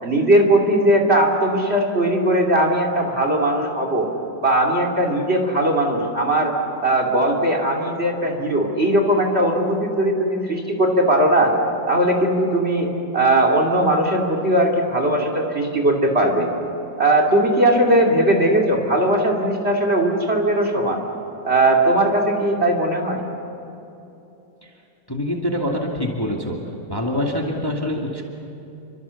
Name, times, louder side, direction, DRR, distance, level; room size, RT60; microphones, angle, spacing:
voice 1, 0.0-4.1 4.4-6.5 6.8-11.5 11.9-12.9 13.1-16.5 17.0-21.0 21.4-23.2, right 1 dB, 35° right, 2 dB, 3.2 m, -19 dB
voice 2, 25.1-26.6 26.9-28.2, left 1 dB, 10° left, 0 dB, 2.3 m, -25 dB
29.0 x 24.5 x 7.2 m, 2.8 s
omnidirectional pair, 2.0 m